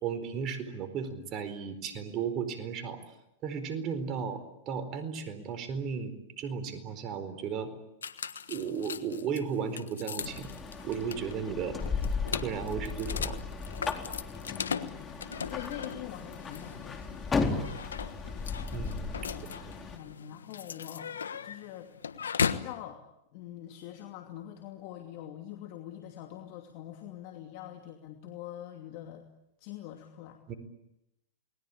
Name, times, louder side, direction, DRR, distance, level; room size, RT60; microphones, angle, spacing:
voice 1, 0.0-3.0 3.4-7.7 8.5-10.5 10.8-11.8 12.4-13.4 18.7-19.2 30.5-30.6, right 6 dB, 35° right, 10 dB, 4.4 m, -35 dB
sound 1, 8.0-22.8, left 6 dB, 90° left, 1.4 m, -38 dB
sound 2, 10.2-20.0, left 4 dB, 15° left, 4.0 m, -36 dB
voice 2, 14.5-17.1 19.1-21.9 22.5-23.0 23.3-29.3 29.6-30.4, left 12 dB, 55° left, 5 dB, 2.6 m, -44 dB
29.0 x 20.5 x 8.7 m, 0.88 s
hypercardioid pair, 115°, 0 cm